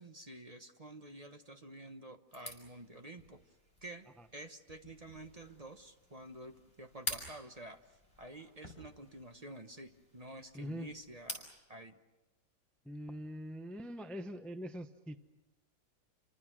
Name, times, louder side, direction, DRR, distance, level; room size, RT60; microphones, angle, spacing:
voice 1, 0.0-3.4 3.8-12.0, right 1 dB, 25° right, 6 dB, 0.9 m, -50 dB
sound 1, 2.3-11.6, left 1 dB, 15° left, 6.0 m, -49 dB
voice 2, 10.5-10.9 12.8-15.2, equal, ahead, 8 dB, 0.4 m, -43 dB
29.5 x 25.0 x 6.1 m, 1.1 s
omnidirectional pair, 2.0 m